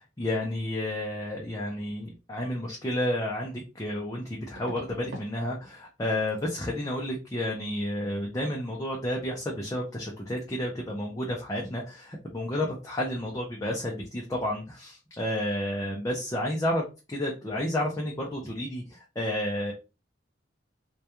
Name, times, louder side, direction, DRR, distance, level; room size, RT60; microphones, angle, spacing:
voice 1, 0.0-19.7, left 1 dB, 15° left, -1 dB, 0.4 m, -31 dB
sound 1, 3.0-3.1 4.5-5.3 5.6-6.0 6.3-6.5 9.4-9.5 9.8-10.0 10.3-10.4, right 1 dB, 85° right, 1.1 m, -45 dB
2.2 x 2.2 x 2.8 m, 0.29 s
head